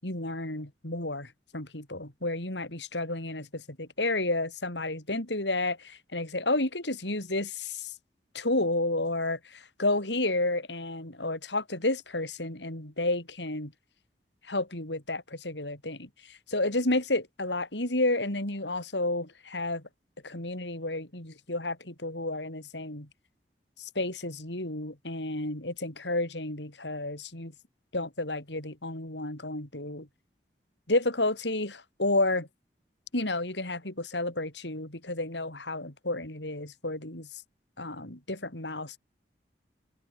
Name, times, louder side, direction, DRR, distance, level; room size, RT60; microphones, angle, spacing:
voice 1, 0.0-7.9 8.3-13.7 14.4-19.9 20.2-23.1 23.8-27.5 27.9-30.1 30.9-32.5 33.1-37.4 37.8-39.0, left 2 dB, 85° left, 6.4 m, -31 dB
head